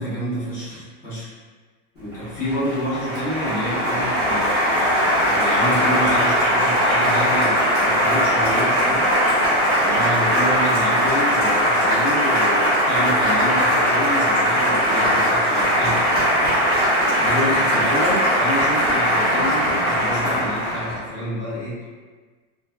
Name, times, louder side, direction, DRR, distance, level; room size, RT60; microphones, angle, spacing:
voice 1, 0.0-1.3 2.0-9.4 9.8-16.0 17.1-21.9, equal, 35° left, -11 dB, 1.2 m, -28 dB
Applause, 2.1-21.0, equal, 20° left, 0.3 m, -19 dB
2.6 x 2.2 x 2.3 m, 1.4 s
supercardioid pair, 170°, 46 cm